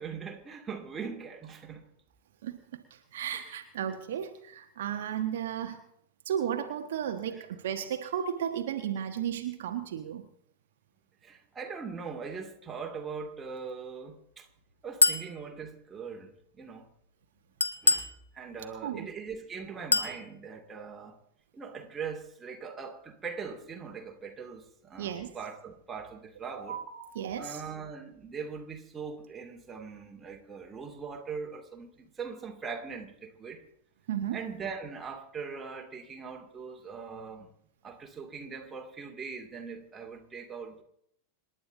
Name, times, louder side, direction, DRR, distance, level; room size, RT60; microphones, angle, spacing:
voice 1, 0.0-1.9 7.4-7.5 11.2-14.5 14.8-16.9 17.8-21.2 21.5-26.8 27.4-33.6 34.3-37.5 37.8-40.8, right 5 dB, 15° right, 2.6 m, -41 dB
voice 2, 2.4-5.8 6.2-10.2 18.8-19.1 25.0-25.3 26.5-27.6 34.1-34.4, right 9 dB, 60° right, 1.4 m, -34 dB
Chink clink, 15.0-15.3 17.6-18.2 19.9-20.2, left 4 dB, 75° left, 1.1 m, -24 dB
27.0 x 11.0 x 3.9 m
figure-of-eight pair, 90°, 0 cm